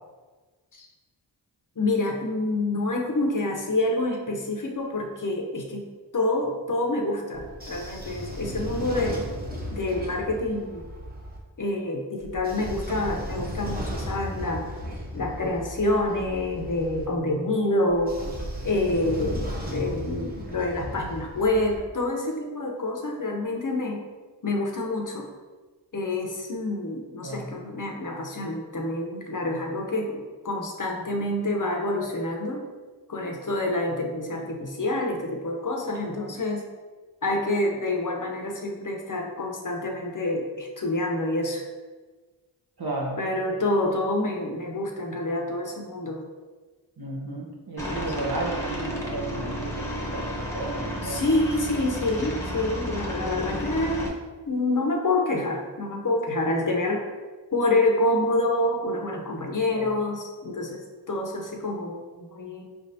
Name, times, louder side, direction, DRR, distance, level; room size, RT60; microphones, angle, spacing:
voice 1, 1.8-5.9 6.1-9.2 9.7-10.9 11.6-14.6 15.1-18.2 18.6-24.1 24.4-25.3 25.9-32.7 33.1-36.7 37.2-41.6 43.2-46.3 47.9-48.1 51.0-54.1 54.5-57.0 57.5-62.0 62.3-62.6, left 2 dB, 40° left, 1 dB, 0.8 m, -27 dB
Train / Sliding door, 7.3-11.4 12.2-17.0 17.9-21.8, equal, 20° right, 1.0 m, -35 dB
voice 2, 27.2-27.6 42.8-43.2 47.0-51.2 59.7-59.9, right 2 dB, 55° right, -2 dB, 1.1 m, -33 dB
Aircraft, 47.8-54.1, equal, 5° left, 1.0 m, -32 dB
4.5 x 3.3 x 2.7 m, 1.3 s
cardioid pair, 40°, 46 cm